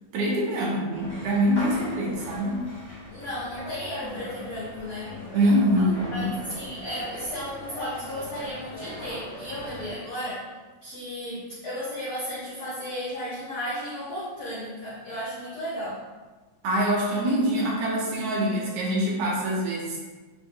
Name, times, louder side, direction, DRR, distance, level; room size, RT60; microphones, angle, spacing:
voice 1, 0.1-2.6 5.3-6.3 16.6-20.0, equal, 75° right, -4 dB, 2.0 m, -24 dB
sound 1, 0.9-9.9, left 1 dB, 70° left, 0.8 m, -40 dB
voice 2, 3.1-5.1 5.7-10.5 10.8-16.0, equal, 85° left, -7 dB, 1.1 m, -34 dB
4.9 x 2.0 x 3.7 m, 1.3 s
omnidirectional pair, 3.5 m